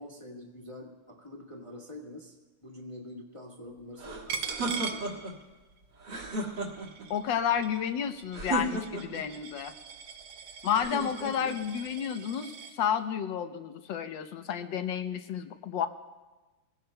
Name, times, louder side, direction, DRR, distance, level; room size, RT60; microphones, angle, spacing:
voice 1, 0.0-5.3, left 1 dB, 15° left, -1 dB, 1.4 m, -46 dB
sound 1, 4.0-5.4 6.0-7.1 8.3-9.3 10.7-11.6, right 2 dB, 55° right, 2.6 m, -34 dB
Coin (dropping), 4.3-5.8 6.1-12.8, right 6 dB, 75° right, 1.8 m, -41 dB
voice 2, 7.1-9.7 10.6-15.9, left 8 dB, 65° left, 9 dB, 1.4 m, -31 dB
24.0 x 16.0 x 2.3 m, 1.2 s
omnidirectional pair, 2.3 m